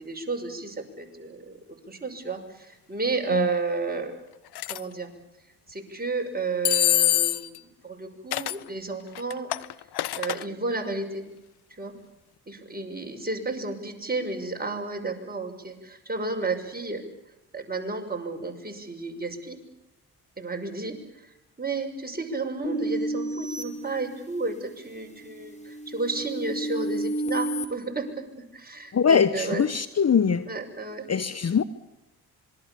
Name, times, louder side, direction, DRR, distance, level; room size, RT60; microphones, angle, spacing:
voice 1, 0.0-1.6 1.9-4.1 4.7-5.1 5.7-9.5 10.2-11.2 11.8-11.9 12.5-17.0 17.5-19.6 20.4-20.9 21.6-28.2 28.5-29.6 30.4-31.0, right 3 dB, 20° right, 3 dB, 6.1 m, -32 dB
sound 1, 4.5-4.8 6.6-7.6 8.3-8.6 9.1-10.4, left 14 dB, 60° left, 1.0 m, -24 dB
sound 2, 22.6-24.6 25.1-27.7, right 1 dB, 15° left, 4.7 m, -31 dB
voice 2, 28.9-30.5 31.1-31.6, left 6 dB, 35° left, 14 dB, 1.1 m, -22 dB
26.0 x 23.0 x 7.2 m, 0.92 s
hypercardioid pair, 45°, 44 cm